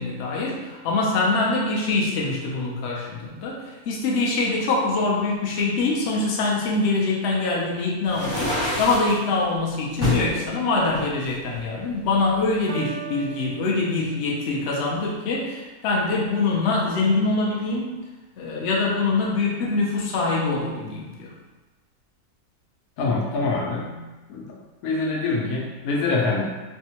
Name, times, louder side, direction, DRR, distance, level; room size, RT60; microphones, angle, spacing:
voice 1, 0.0-3.6 3.9-17.9 18.4-21.3, left 3 dB, 60° left, -3 dB, 0.7 m, -24 dB
sound 1, 8.1-9.2 10.0-10.3 10.9-12.0, left 2 dB, 20° left, 1.0 m, -26 dB
Piano, 12.7-14.7, right 9 dB, 70° right, 0.6 m, -39 dB
voice 2, 23.0-24.0 24.3-24.5 24.8-26.5, left 3 dB, 80° left, -2 dB, 1.1 m, -25 dB
3.4 x 2.1 x 2.8 m, 1.2 s
omnidirectional pair, 1.6 m